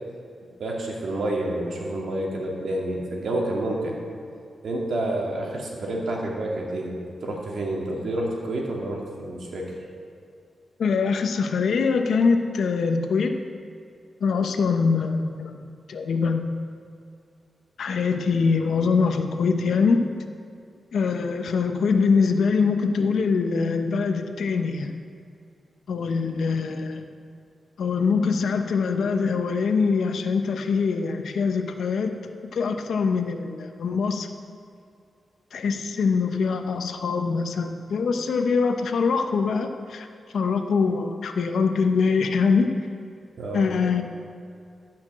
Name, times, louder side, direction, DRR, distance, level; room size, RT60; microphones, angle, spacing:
voice 1, 0.6-4.0 4.6-9.7 43.4-43.7, right 1 dB, 75° right, -2 dB, 2.3 m, -29 dB
voice 2, 10.8-13.3 14.2-16.4 17.8-20.1 20.9-24.9 25.9-27.1 27.8-34.3 35.5-40.1 40.3-42.7 43.5-44.0, left 5 dB, 80° left, 6 dB, 0.9 m, -23 dB
12.5 x 5.9 x 7.5 m, 2.4 s
cardioid pair, 90°, 0 cm